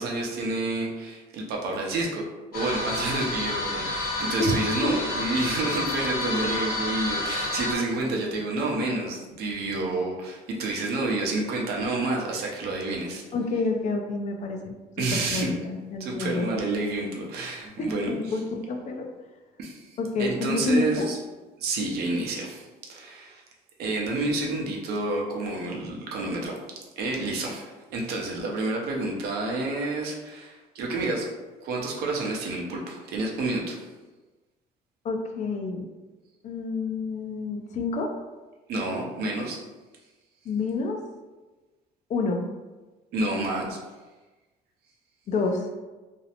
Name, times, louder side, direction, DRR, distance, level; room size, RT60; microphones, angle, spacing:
voice 1, 0.0-2.2 2.5-13.2 15.0-15.5 16.0-18.1 19.6-19.9 20.2-21.2 21.6-23.4 23.8-26.5 27.0-31.3 31.6-33.8 38.7-39.6 43.1-43.8, right 2 dB, 70° right, -1 dB, 0.6 m, -29 dB
sound 1, 2.5-7.7, left 2 dB, 65° left, 0.9 m, -29 dB
voice 2, 4.4-4.9 13.3-16.5 17.8-19.0 20.0-21.1 35.0-35.9 36.4-38.1 40.5-41.0 42.1-42.4 45.3-45.7, left 3 dB, 45° left, 3 dB, 0.4 m, -28 dB
2.5 x 2.0 x 2.8 m, 1.2 s
cardioid pair, 110°, 17 cm